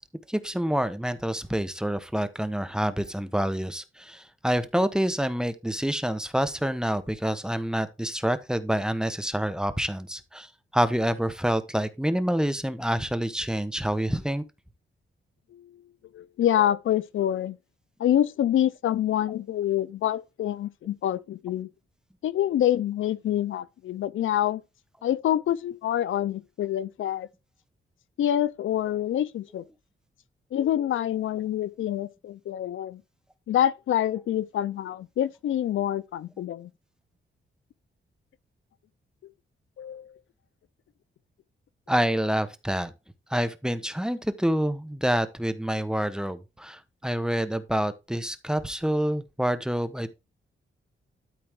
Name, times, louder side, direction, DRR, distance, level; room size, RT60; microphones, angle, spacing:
voice 1, 0.3-14.4 41.9-42.9 43.3-50.1, equal, 5° right, 1.1 m, -27 dB
voice 2, 16.1-17.6 18.0-21.7 22.2-24.6 25.0-27.3 28.2-29.6 30.5-33.0 33.5-36.7 39.8-40.1, left 11 dB, 85° left, 0.6 m, -26 dB
12.5 x 4.3 x 3.7 m
cardioid pair, 95°, 20 cm